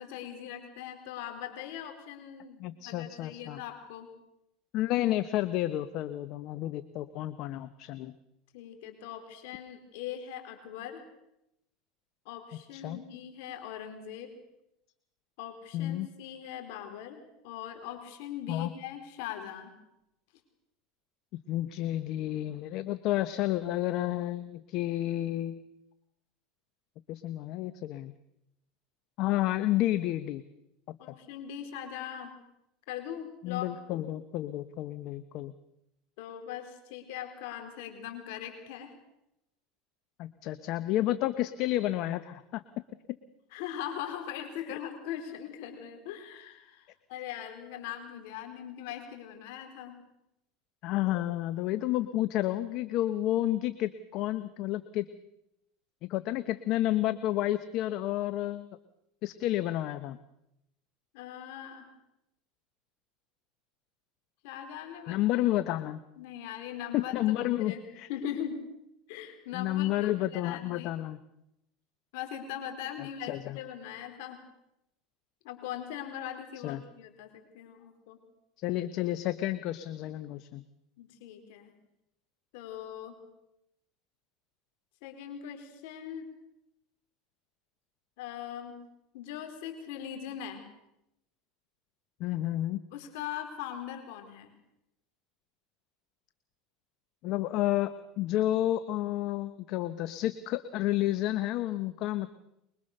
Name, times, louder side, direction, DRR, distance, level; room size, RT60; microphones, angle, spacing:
voice 1, 0.0-4.1 8.5-11.0 12.2-14.3 15.4-19.7 31.0-32.3 32.9-33.7 36.2-38.9 43.5-50.0 61.1-61.9 64.4-65.2 66.2-67.1 67.4-67.8 68.1-68.6 69.1-70.9 72.1-74.4 75.4-78.2 81.0-81.7 82.5-83.2 85.0-86.3 88.2-88.8 89.1-90.6 92.9-94.5, left 10 dB, 75° left, 6 dB, 4.3 m, -41 dB
voice 2, 2.6-3.6 4.7-8.1 12.7-13.0 15.7-16.1 18.5-18.7 21.5-25.7 27.1-28.1 29.2-30.4 30.9-31.0 33.4-35.5 40.2-42.6 44.7-44.8 50.8-55.1 56.1-58.7 59.2-60.2 65.1-66.0 66.9-68.1 69.5-71.2 73.3-73.6 76.6-76.8 78.6-80.6 92.2-92.8 97.2-102.3, left 14 dB, 60° left, 12 dB, 1.1 m, -30 dB
24.0 x 22.5 x 6.7 m, 0.85 s
supercardioid pair, 110°, 0 cm